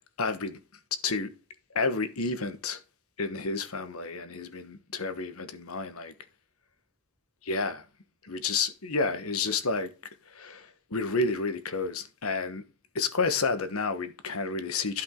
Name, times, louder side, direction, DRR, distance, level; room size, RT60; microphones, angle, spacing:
voice 1, 0.2-0.6 1.0-1.3 1.7-2.8 3.2-6.1 7.4-7.8 8.2-9.9 10.3-12.6 12.9-15.0, left 4 dB, 85° left, 1.2 m, -30 dB
12.0 x 5.3 x 3.7 m
head